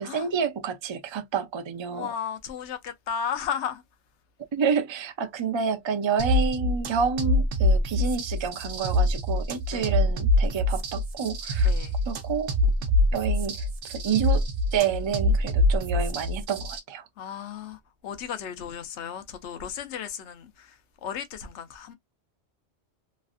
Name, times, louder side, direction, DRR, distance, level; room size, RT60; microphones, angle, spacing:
voice 1, 0.0-2.1 4.5-11.7 12.1-12.5 13.1-14.4 14.7-17.0, right 6 dB, 45° right, 0.3 m, -29 dB
voice 2, 1.9-3.8 9.7-10.0 11.6-12.0 17.2-21.9, left 8 dB, 80° left, 1.0 m, -35 dB
sound 1, 6.2-16.8, left 1 dB, 80° right, 1.0 m, -25 dB
3.2 x 2.4 x 2.4 m
omnidirectional pair, 1.2 m